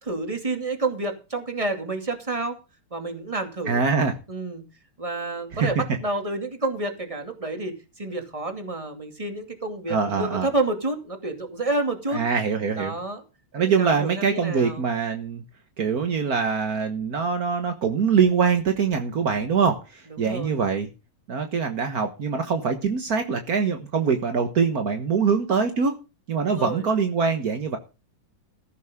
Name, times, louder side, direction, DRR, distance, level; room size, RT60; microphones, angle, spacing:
voice 1, 0.0-2.6 2.9-3.8 4.3-4.6 5.0-12.2 12.8-13.2 13.6-14.9 20.1-20.6 26.5-26.8, right 2 dB, 10° right, 5 dB, 2.0 m, -29 dB
voice 2, 3.7-4.2 5.5-5.7 9.9-10.5 12.1-13.0 13.5-15.4 15.8-20.9 21.3-25.9 26.3-27.8, right 5 dB, 75° right, 6 dB, 0.8 m, -23 dB
14.5 x 11.5 x 3.7 m, 0.30 s
omnidirectional pair, 3.7 m